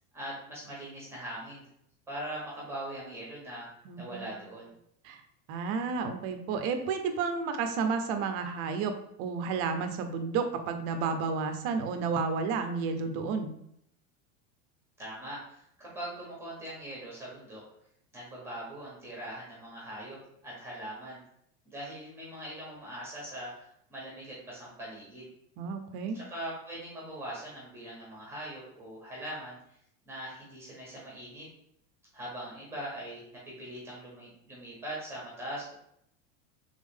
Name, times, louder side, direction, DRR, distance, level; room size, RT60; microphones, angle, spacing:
voice 1, 0.1-1.6 2.1-3.7 4.0-4.7 15.0-17.6 18.1-21.2 21.6-23.5 23.9-25.3 26.1-29.6 30.0-31.5 32.1-35.7, right 1 dB, 5° right, -5 dB, 1.3 m, -41 dB
voice 2, 3.9-4.2 5.0-5.2 5.5-8.9 9.2-13.5 25.6-26.2, right 5 dB, 40° right, 7 dB, 0.5 m, -31 dB
3.6 x 3.5 x 3.5 m, 0.73 s
supercardioid pair, 150°, 39 cm